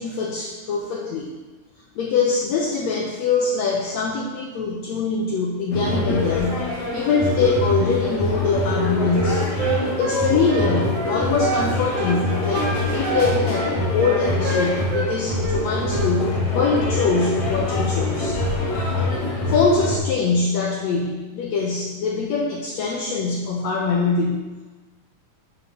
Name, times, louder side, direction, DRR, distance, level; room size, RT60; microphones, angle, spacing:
voice 1, 0.0-1.3 2.0-9.4 10.0-18.4 19.5-24.5, left 4 dB, 85° left, -2 dB, 1.5 m, -23 dB
sound 1, 5.7-20.0, left 2 dB, 60° left, 3.8 m, -24 dB
Wind instrument woodwind instrument, 8.7-11.7 11.9-12.2 12.5-15.1 15.4-16.1, right 4 dB, 70° right, 2.1 m, -27 dB
9.5 x 6.1 x 3.0 m, 1.2 s
omnidirectional pair, 4.0 m